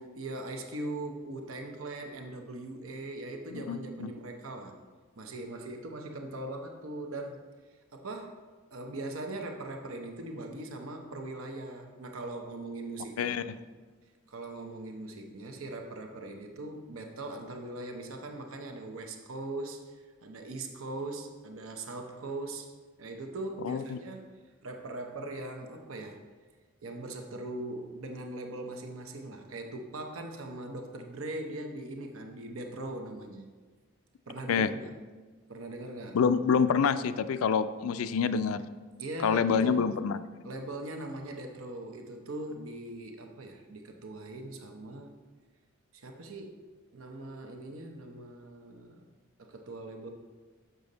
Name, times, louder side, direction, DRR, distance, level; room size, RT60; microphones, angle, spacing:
voice 1, 0.1-4.8 5.2-7.4 7.9-8.4 8.7-13.5 14.3-22.7 23.0-26.2 26.8-33.5 34.3-35.0 35.5-36.2 39.0-40.0 40.4-45.1 45.9-46.7 46.9-49.1 49.4-50.1, right 2 dB, 85° right, 4 dB, 0.8 m, -40 dB
voice 2, 3.5-4.1 13.2-13.4 23.6-24.0 34.5-34.7 36.1-38.6 39.2-40.2, left 6 dB, 90° left, 13 dB, 0.4 m, -27 dB
6.9 x 6.3 x 4.0 m, 1.4 s
head